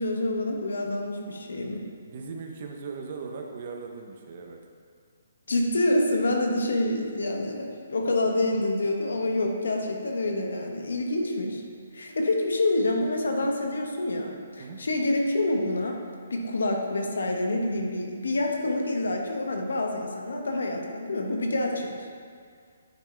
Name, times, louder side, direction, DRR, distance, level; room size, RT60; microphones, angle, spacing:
voice 1, 0.0-1.8 5.5-11.6 11.9-16.0 16.3-22.0, left 2 dB, 85° left, 2 dB, 0.9 m, -27 dB
voice 2, 2.0-4.6 14.6-14.8, right 5 dB, 45° right, 2 dB, 0.6 m, -38 dB
8.9 x 3.5 x 3.2 m, 2.1 s
hypercardioid pair, 160°, 0 cm